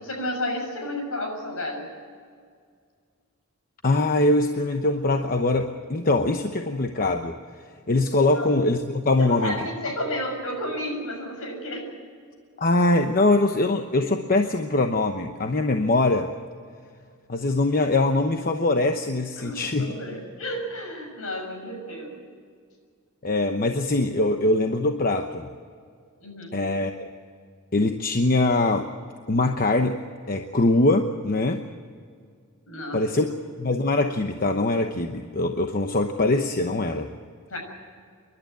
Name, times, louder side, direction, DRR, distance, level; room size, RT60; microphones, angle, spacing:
voice 1, 0.0-1.9 8.3-8.5 9.2-11.9 19.4-22.3 26.2-26.6 32.7-33.1 37.5-37.6, left 1 dB, 70° left, 2 dB, 6.5 m, -32 dB
voice 2, 3.8-7.4 7.9-9.6 12.6-16.3 17.3-19.9 23.2-25.5 26.5-27.1 27.7-28.9 29.3-30.0 30.3-31.6 32.9-33.2 33.6-37.1, left 2 dB, 40° left, 5 dB, 1.0 m, -22 dB
28.5 x 11.5 x 9.2 m, 2.1 s
head